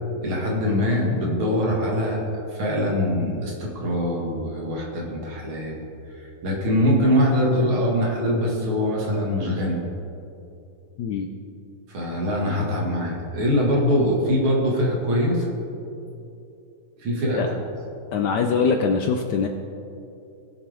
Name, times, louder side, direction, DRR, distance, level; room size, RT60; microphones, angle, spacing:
voice 1, 0.2-2.2 2.5-5.8 6.4-9.8 11.9-15.5 17.0-17.4, equal, 75° right, -3 dB, 2.8 m, -23 dB
voice 2, 11.0-11.3 17.4-17.5 18.1-19.5, left 5 dB, 70° left, 5 dB, 1.0 m, -22 dB
19.0 x 7.2 x 3.5 m, 2.7 s
omnidirectional pair, 2.3 m